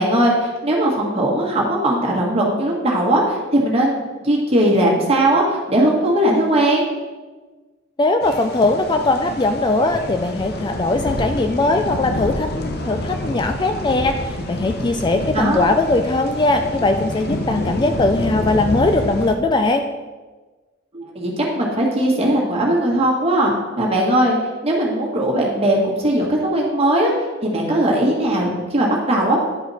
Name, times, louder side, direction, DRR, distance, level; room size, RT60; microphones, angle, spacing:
voice 1, 0.0-6.8 15.3-15.6 20.9-24.4 24.6-27.1 27.4-29.4, right 1 dB, 30° right, -2 dB, 1.6 m, -19 dB
voice 2, 8.0-19.9, left 2 dB, 25° left, 6 dB, 0.3 m, -20 dB
sound 1, 8.2-19.4, left 1 dB, 55° left, 0.9 m, -28 dB
10.5 x 4.9 x 4.1 m, 1.3 s
head